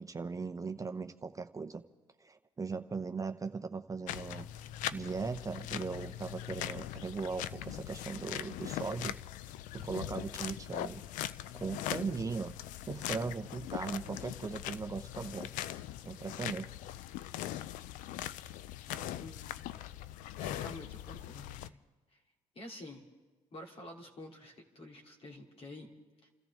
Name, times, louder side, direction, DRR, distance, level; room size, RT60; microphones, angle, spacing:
voice 1, 0.0-1.8 2.2-4.5 4.9-9.1 9.7-11.0 11.5-12.5 12.9-15.5 16.0-16.8, right 4 dB, 25° right, 7 dB, 0.8 m, -38 dB
sound 1, 4.1-21.7, left 12 dB, 90° left, 0.5 m, -41 dB
voice 2, 18.9-19.6 20.4-21.8 22.5-23.0 23.5-25.9 26.2-26.3, left 1 dB, 45° left, 2 dB, 2.6 m, -49 dB
29.5 x 14.0 x 3.6 m, 1.3 s
supercardioid pair, 75°, 13 cm